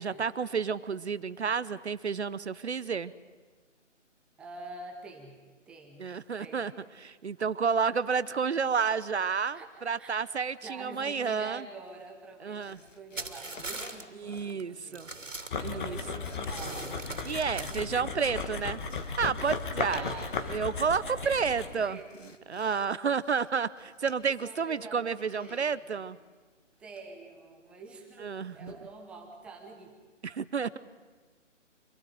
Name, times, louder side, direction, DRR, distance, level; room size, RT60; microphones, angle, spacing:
voice 1, 0.0-3.1 6.0-6.7 7.0-11.6 12.4-12.8 14.2-15.1 15.6-16.0 17.2-18.8 19.2-20.0 20.5-22.0 22.5-26.2 28.2-28.7 30.2-30.8, right 6 dB, 60° right, 16 dB, 0.9 m, -30 dB
voice 2, 4.4-6.1 6.4-6.7 9.5-10.2 10.6-17.1 17.7-18.9 19.8-22.7 24.2-26.1 26.8-29.9, right 3 dB, 5° right, 2 dB, 0.9 m, -47 dB
sound 1, 12.6-14.8 15.5-17.8 18.1-18.2 18.4-20.4 20.7-21.2 21.6-22.9 23.2-24.7 25.2-25.8 27.0-27.3 28.7-29.0 29.5-29.7, left 3 dB, 85° left, 2.1 m, -51 dB
sound 2, 13.2-14.0 14.5-14.6 14.9-16.1 16.4-17.8, right 3 dB, 85° right, 2.9 m, -40 dB
sound 3, 15.5-21.8, left 4 dB, 40° left, 2.2 m, -36 dB
26.0 x 17.0 x 9.2 m, 1.4 s
figure-of-eight pair, 150°, 37 cm